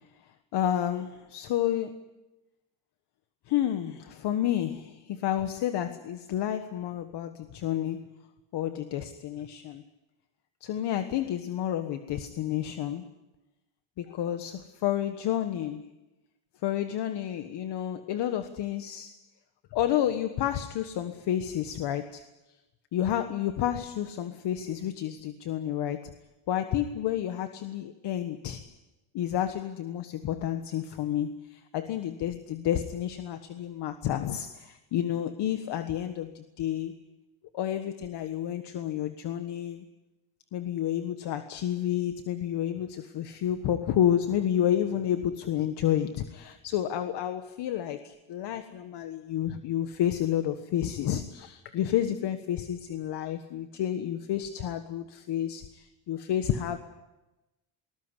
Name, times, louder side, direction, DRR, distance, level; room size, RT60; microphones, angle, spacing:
voice 1, 0.2-1.9 3.5-8.2 8.5-9.8 10.6-13.1 14.0-15.9 16.6-19.2 19.7-22.2 22.9-26.1 26.5-28.7 29.1-37.0 37.5-39.8 40.5-56.8, left 11 dB, 55° left, 9 dB, 1.5 m, -30 dB
21.0 x 20.0 x 9.8 m, 1.0 s
cardioid pair, 130°, 48 cm